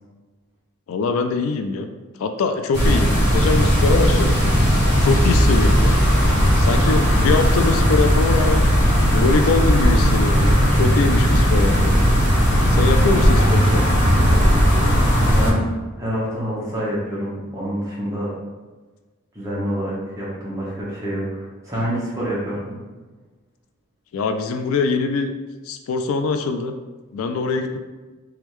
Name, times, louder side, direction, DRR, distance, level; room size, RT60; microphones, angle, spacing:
voice 1, 0.9-1.9 2.2-4.4 4.9-5.9 6.6-8.8 9.1-11.9 12.7-13.9 24.1-25.3 25.7-26.7 27.1-27.8, left 4 dB, 70° left, 7 dB, 0.3 m, -23 dB
sound 1, 2.7-15.5, equal, 50° left, 1.1 m, -16 dB
voice 2, 16.0-18.3 19.3-22.6, equal, 15° right, -7 dB, 1.1 m, -27 dB
3.5 x 3.4 x 3.1 m, 1.3 s
head